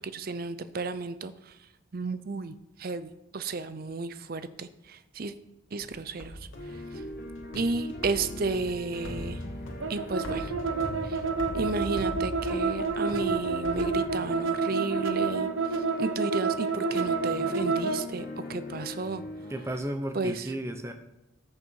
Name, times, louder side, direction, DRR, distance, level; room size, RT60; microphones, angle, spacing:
voice 1, 0.1-1.3 1.9-2.5 2.8-5.3 5.7-6.4 7.5-9.4 9.9-10.5 11.5-15.5 16.0-19.2 20.1-20.5, right 3 dB, 45° right, 12 dB, 0.5 m, -33 dB
sound 1, 5.8-14.6, equal, 75° left, 2.0 m, -41 dB
sound 2, 6.5-19.8, left 1 dB, 50° left, 1.7 m, -41 dB
sound 3, 9.8-18.0, right 4 dB, 75° right, 0.9 m, -29 dB
voice 2, 19.5-20.9, right 1 dB, 15° right, 6 dB, 0.9 m, -33 dB
14.0 x 6.6 x 4.6 m, 0.97 s
head